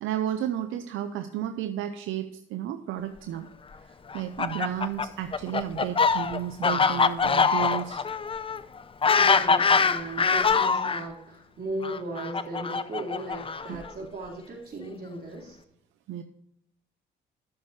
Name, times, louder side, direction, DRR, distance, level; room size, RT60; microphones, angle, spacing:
voice 1, 0.0-3.5 3.8-8.0 13.7-13.8 16.1-16.2, right 11 dB, 85° right, 9 dB, 0.7 m, -32 dB
Fowl, 4.1-11.0 11.8-13.9, left 5 dB, 25° left, 0.6 m, -24 dB
voice 2, 9.2-15.6, right 1 dB, 50° right, -2 dB, 4.1 m, -37 dB
12.0 x 8.6 x 3.2 m, 0.77 s
cardioid pair, 90°, 20 cm